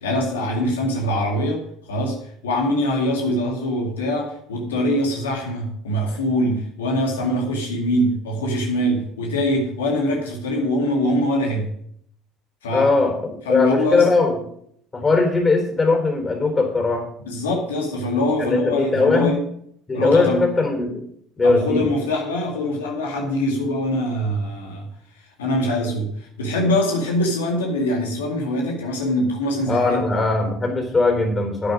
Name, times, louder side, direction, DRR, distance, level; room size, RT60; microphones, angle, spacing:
voice 1, 0.0-11.7 12.6-12.9 13.5-14.1 17.2-19.4 19.9-20.5 21.4-24.9 25.1-30.0, left 1 dB, 90° left, 0 dB, 2.2 m, -23 dB
voice 2, 12.7-14.4 14.9-17.1 18.4-19.4 19.9-21.1 21.4-21.9 29.7-31.7, left 3 dB, 25° left, 4 dB, 4.0 m, -19 dB
10.0 x 9.0 x 5.1 m, 0.66 s
hypercardioid pair, 70°, 0 cm